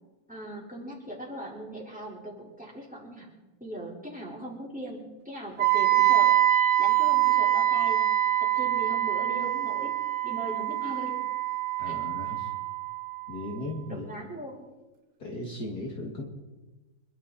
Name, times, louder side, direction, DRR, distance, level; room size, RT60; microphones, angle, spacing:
voice 1, 0.3-3.3 3.6-6.3 6.8-8.0 8.4-9.9 10.2-11.2 11.9-12.0 13.9-14.7, equal, 5° right, -3 dB, 4.3 m, -39 dB
Wind instrument woodwind instrument, 5.6-13.5, right 13 dB, 85° right, 2.2 m, -25 dB
voice 2, 11.8-12.5 13.3-14.1 15.2-16.2, left 1 dB, 50° left, -1 dB, 2.8 m, -36 dB
26.0 x 12.0 x 4.3 m, 1.1 s
omnidirectional pair, 2.2 m